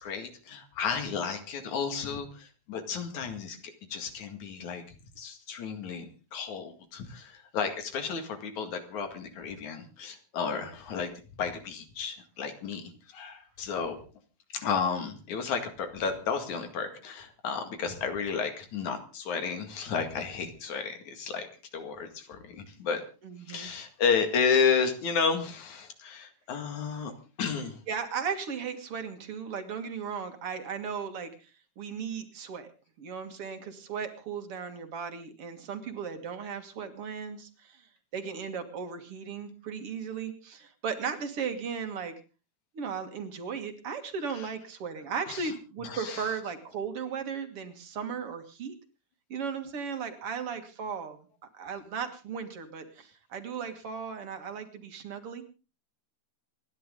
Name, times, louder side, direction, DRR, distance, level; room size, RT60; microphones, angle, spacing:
voice 1, 0.0-3.6 3.9-11.1 11.4-14.0 14.5-21.5 21.7-23.0 23.5-27.1 27.4-27.8 44.3-44.5 45.3-45.5 45.8-46.3, left 6 dB, 80° left, 7 dB, 3.4 m, -32 dB
voice 2, 23.2-23.7 27.9-31.5 31.8-32.7 33.0-37.8 38.1-42.1 42.7-48.7 49.3-51.2 51.6-55.4, right 6 dB, 55° right, 7 dB, 2.5 m, -36 dB
28.0 x 10.5 x 3.7 m, 0.34 s
omnidirectional pair, 3.3 m